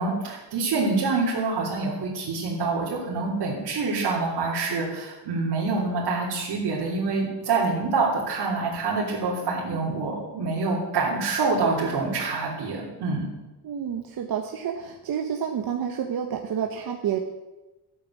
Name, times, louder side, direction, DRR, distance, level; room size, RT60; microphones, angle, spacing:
voice 1, 0.0-13.3, right 3 dB, 90° right, -7 dB, 3.5 m, -26 dB
voice 2, 13.6-17.2, right 8 dB, 65° right, 3 dB, 1.1 m, -29 dB
13.0 x 9.1 x 7.5 m, 1.1 s
wide cardioid pair, 160°, 40 cm